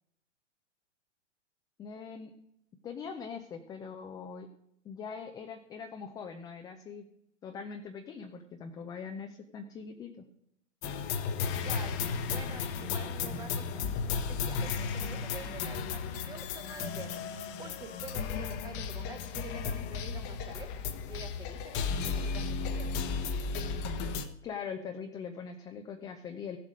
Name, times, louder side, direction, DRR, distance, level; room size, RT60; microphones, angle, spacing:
voice 1, 1.8-2.3 2.8-4.5 4.8-7.1 7.4-10.3 24.4-26.6, left 6 dB, 10° left, 5 dB, 0.5 m, -42 dB
sound 1, 10.8-24.2, left 5 dB, 30° left, 1.0 m, -34 dB
voice 2, 11.6-22.9, right 4 dB, 10° right, 10 dB, 0.9 m, -48 dB
15.5 x 7.6 x 5.1 m, 0.76 s
figure-of-eight pair, 120°, 37 cm